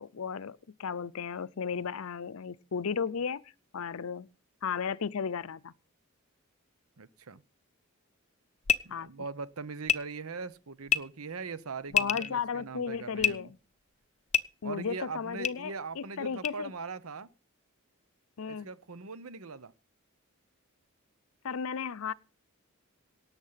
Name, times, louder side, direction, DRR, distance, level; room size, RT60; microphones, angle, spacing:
voice 1, 0.0-4.3 4.6-5.7 8.9-9.1 11.9-13.6 14.6-16.7 18.4-18.7 21.4-22.1, left 6 dB, 80° left, 0.6 m, -35 dB
voice 2, 7.0-7.4 8.8-13.5 14.6-17.3 18.5-19.7, right 4 dB, 85° right, 0.9 m, -41 dB
sound 1, 8.6-8.8 9.9-10.0 10.9-11.0 11.9-12.3 13.2-13.3 14.3-14.4 15.4-15.5 16.4-16.5, left 9 dB, 30° left, 0.5 m, -25 dB
17.5 x 7.3 x 5.7 m
head